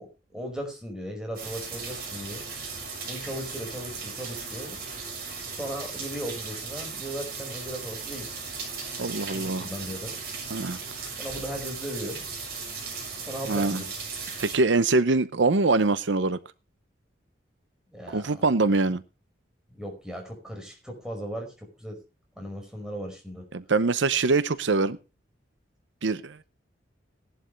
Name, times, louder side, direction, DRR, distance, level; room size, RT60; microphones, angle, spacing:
voice 1, 0.0-2.4 3.1-4.8 5.6-8.4 9.3-10.2 11.2-12.2 13.3-13.9 17.9-18.4 19.7-22.0 22.4-23.4, equal, 5° right, 5.2 m, -37 dB
sound 1, 1.4-14.6, right 4 dB, 50° right, 6.3 m, -37 dB
voice 2, 9.0-9.7 10.5-11.1 13.5-13.8 14.4-16.4 18.1-19.0 23.5-25.0 26.0-26.4, right 3 dB, 80° right, 0.8 m, -24 dB
17.5 x 11.5 x 3.3 m
head